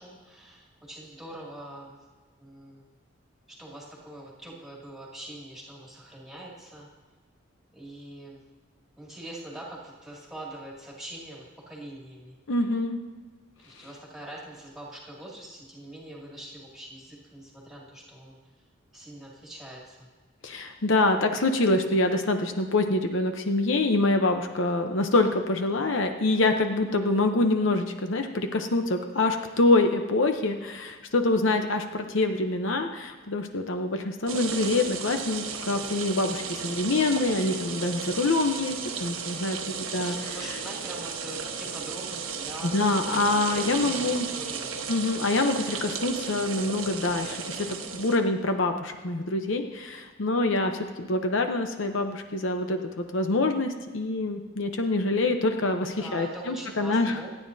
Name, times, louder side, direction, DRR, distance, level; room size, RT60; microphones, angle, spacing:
voice 1, 0.0-2.0 2.4-2.8 3.6-6.9 7.7-8.4 9.0-12.3 13.6-18.4 18.9-20.1 40.0-44.7 55.9-57.3, right 1 dB, ahead, -5 dB, 2.4 m, -43 dB
voice 2, 12.5-13.0 13.8-13.9 20.4-40.1 42.6-44.3 44.9-47.7 47.9-57.3, left 2 dB, 65° left, 6 dB, 0.8 m, -25 dB
sound 1, 34.3-48.2, right 6 dB, 90° right, 1.2 m, -34 dB
27.0 x 9.4 x 2.7 m, 1.4 s
head